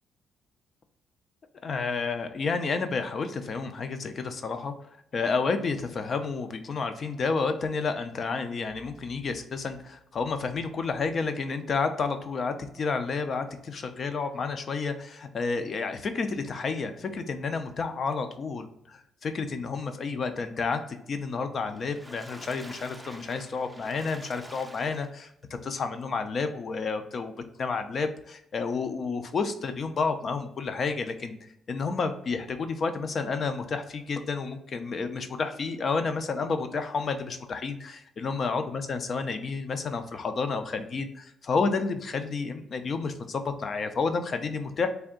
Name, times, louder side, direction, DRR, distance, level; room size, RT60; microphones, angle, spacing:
voice 1, 1.6-4.7 5.1-20.8 21.1-25.3 25.6-27.3 27.6-44.9, left 4 dB, 50° left, 8 dB, 0.5 m, -30 dB
Water / Splash splatter, 21.6-25.4 26.0-26.1 26.4-26.5, right 1 dB, 5° right, 0.5 m, -47 dB
3.4 x 2.6 x 3.7 m, 0.77 s
cardioid pair, 90°, 0 cm